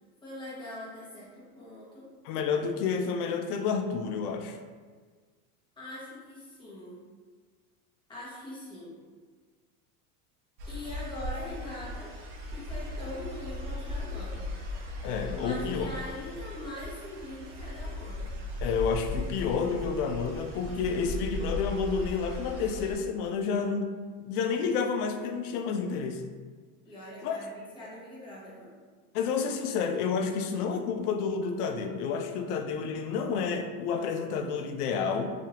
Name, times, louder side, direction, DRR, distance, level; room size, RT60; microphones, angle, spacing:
voice 1, 0.2-2.0 5.8-7.0 8.1-9.0 10.7-12.1 12.5-14.5 15.3-18.3 26.8-28.7, left 1 dB, 10° left, -8 dB, 0.9 m, -42 dB
voice 2, 2.2-4.6 15.0-15.9 18.6-23.9 24.2-26.2 27.2-27.4 29.1-35.3, left 5 dB, 75° left, 6 dB, 0.5 m, -30 dB
sound 1, 10.6-22.9, left 2 dB, 45° right, 0.6 m, -37 dB
2.7 x 2.5 x 2.8 m, 1.5 s
supercardioid pair, 130°, 46 cm